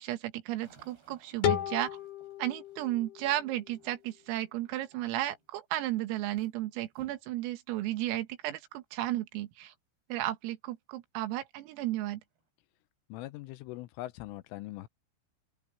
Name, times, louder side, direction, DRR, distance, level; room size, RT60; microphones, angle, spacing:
voice 1, 0.0-1.9 2.4-9.7 10.1-12.2, right 15 dB, 90° right, 4.2 m, -34 dB
sound 1, 0.6-4.4 4.9-5.5 5.8-6.5 6.9-7.3 7.9-8.0 8.7-8.8 11.3-11.4 11.9-12.5, right 3 dB, 55° right, 9.8 m, -62 dB
sound 2, 1.4-4.3, left 11 dB, 55° left, 3.9 m, -34 dB
voice 2, 13.1-14.9, left 17 dB, 80° left, 3.2 m, -41 dB
open air
omnidirectional pair, 5.9 m